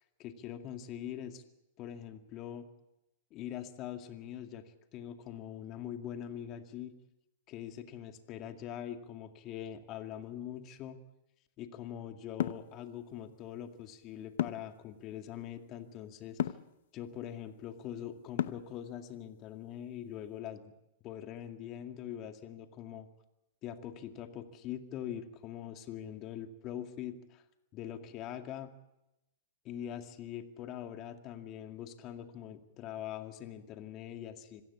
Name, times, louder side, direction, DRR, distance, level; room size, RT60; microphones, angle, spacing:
voice 1, 0.2-1.4 1.8-2.7 3.3-4.6 4.9-6.9 7.5-11.0 11.6-16.4 16.9-20.7 21.0-23.1 23.6-27.4 27.7-28.7 29.6-34.6, left 10 dB, 35° left, 7 dB, 2.2 m, -43 dB
sound 1, 12.4-12.7 14.4-14.8 16.4-16.7 18.4-18.8, left 11 dB, 65° left, 0.8 m, -32 dB
25.5 x 16.0 x 8.5 m, 0.92 s
hypercardioid pair, 110°, 0 cm